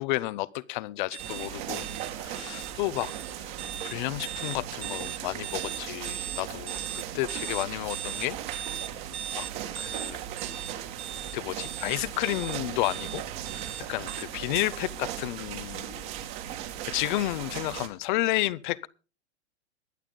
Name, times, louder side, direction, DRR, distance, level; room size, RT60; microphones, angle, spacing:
voice 1, 0.0-1.9 2.2-3.5 3.8-8.4 9.3-9.5 9.8-10.2 11.3-13.2 13.9-16.0 16.9-18.9, left 18 dB, 45° left, 0.7 m, -31 dB
sound 1, 1.1-14.2, right 10 dB, 65° right, 1.2 m, -38 dB
sound 2, 1.2-17.9, right 10 dB, 45° right, 2.1 m, -38 dB
22.0 x 8.6 x 3.9 m
hypercardioid pair, 120°, 34 cm